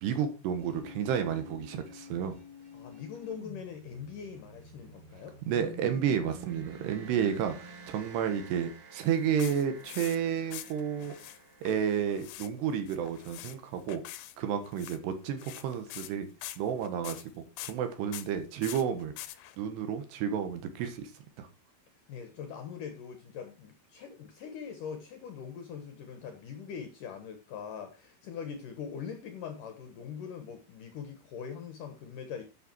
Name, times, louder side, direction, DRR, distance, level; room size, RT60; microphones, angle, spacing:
voice 1, 0.0-2.4 5.5-11.1 11.6-14.0 14.4-16.3 16.6-19.1 19.6-21.1 21.4-21.5, right 8 dB, 70° right, 3.2 m, -31 dB
sound 1, 0.6-12.1, equal, 55° right, 4.6 m, -50 dB
voice 2, 2.7-5.4 22.1-32.4, left 7 dB, 70° left, 2.0 m, -42 dB
sound 2, 9.0-10.2 10.5-11.4 11.6-12.5 12.8-13.6 13.9-14.4 14.6-15.0 15.4-16.1 16.4-17.3 17.6-17.7 18.1-18.3 18.6-19.6, left 15 dB, 90° left, 3.4 m, -44 dB
11.5 x 6.8 x 4.5 m
omnidirectional pair, 5.5 m